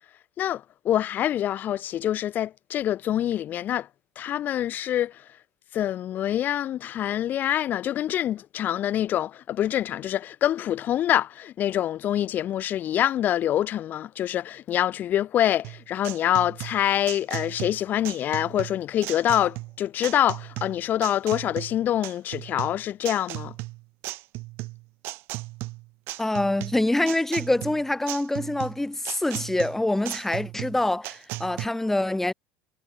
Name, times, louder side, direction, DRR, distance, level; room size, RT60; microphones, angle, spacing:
voice 1, 0.4-3.9 4.2-5.1 5.7-23.5, left 11 dB, 40° left, 2.4 m, -25 dB
sound 1, 15.6-31.7, right 22 dB, 50° right, 3.3 m, -36 dB
voice 2, 26.2-32.3, left 1 dB, 5° left, 4.7 m, -25 dB
figure-of-eight pair, 70°, 5 cm